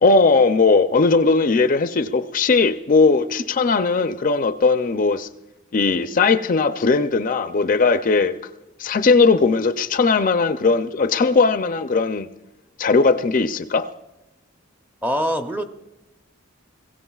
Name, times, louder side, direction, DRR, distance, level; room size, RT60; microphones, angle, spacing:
voice 1, 0.0-5.3 5.7-8.3 8.8-12.3 12.8-13.9, left 4 dB, 40° left, 0.4 m, -18 dB
voice 2, 15.0-15.6, equal, 10° right, 0.6 m, -23 dB
22.0 x 16.0 x 2.3 m
head